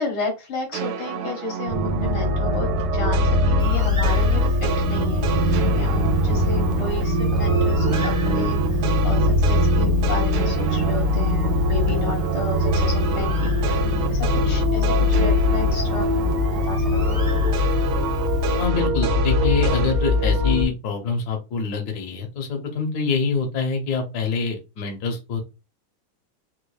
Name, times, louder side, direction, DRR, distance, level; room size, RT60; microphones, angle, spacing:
voice 1, 0.0-16.1 16.6-17.2, left 3 dB, 90° left, 1 dB, 2.3 m, -32 dB
sound 1, 0.7-7.0 7.3-16.6 16.9-19.9, right 8 dB, 85° right, 1.5 m, -31 dB
sound 2, 1.7-20.6, left 2 dB, 70° right, 1.1 m, -21 dB
Bird, 3.6-18.7, right 2 dB, 15° right, 0.7 m, -35 dB
voice 2, 18.6-25.4, left 4 dB, 60° left, 2 dB, 1.3 m, -25 dB
4.5 x 2.4 x 2.3 m, 0.26 s
omnidirectional pair, 2.2 m